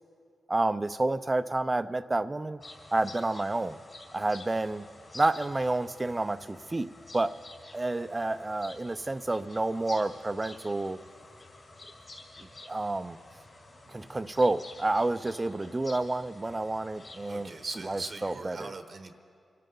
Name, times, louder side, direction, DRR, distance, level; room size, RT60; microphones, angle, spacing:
voice 1, 0.5-2.6 2.9-3.8 4.1-4.9 5.1-7.3 7.7-11.0 12.7-13.2 13.9-17.5 17.8-18.7, right 2 dB, 25° right, 13 dB, 0.5 m, -29 dB
sound 1, 2.6-18.3, left 2 dB, 45° left, 3.8 m, -50 dB
voice 2, 17.3-19.2, right 3 dB, 50° right, 7 dB, 1.0 m, -40 dB
26.0 x 12.5 x 3.9 m, 2.3 s
cardioid pair, 65°, 0 cm